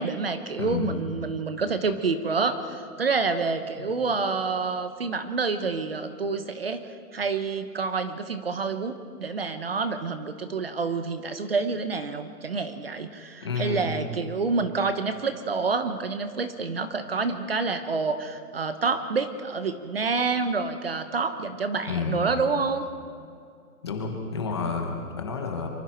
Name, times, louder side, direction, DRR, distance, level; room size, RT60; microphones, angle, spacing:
voice 1, 0.0-6.8 7.1-8.9 9.2-22.8, right 4 dB, 40° right, 10 dB, 1.0 m, -28 dB
voice 2, 0.6-1.0 3.8-3.9 13.4-14.0 21.9-22.2 23.8-25.7, left 5 dB, 15° left, 2 dB, 1.1 m, -30 dB
25.0 x 24.5 x 4.5 m, 2.3 s
hypercardioid pair, 175°, 46 cm